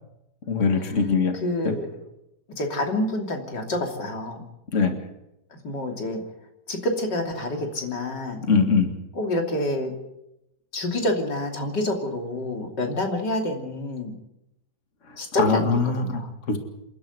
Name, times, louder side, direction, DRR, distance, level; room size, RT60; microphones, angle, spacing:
voice 1, 0.5-1.4 1.6-1.7 4.7-5.0 8.5-8.9 15.1-16.2 16.5-16.6, left 5 dB, 45° left, 6 dB, 2.3 m, -22 dB
voice 2, 1.4-1.9 2.5-4.4 5.6-6.2 6.7-8.4 9.2-9.9 10.7-14.2 15.2-16.3, left 1 dB, 90° left, 3 dB, 3.6 m, -27 dB
28.0 x 11.5 x 9.6 m, 0.86 s
omnidirectional pair, 1.8 m